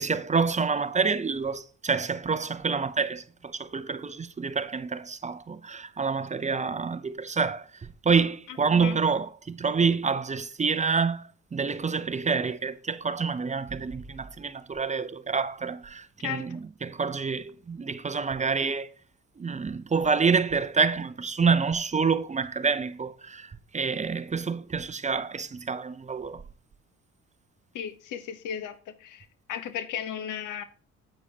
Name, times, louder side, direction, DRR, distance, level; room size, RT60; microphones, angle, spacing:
voice 1, 0.0-18.9 19.4-26.4, right 5 dB, 25° right, 0.6 m, -27 dB
voice 2, 8.5-9.0 16.2-16.5 27.7-30.6, left 9 dB, 90° left, 1.2 m, -35 dB
9.5 x 8.7 x 2.9 m
cardioid pair, 90°, 30 cm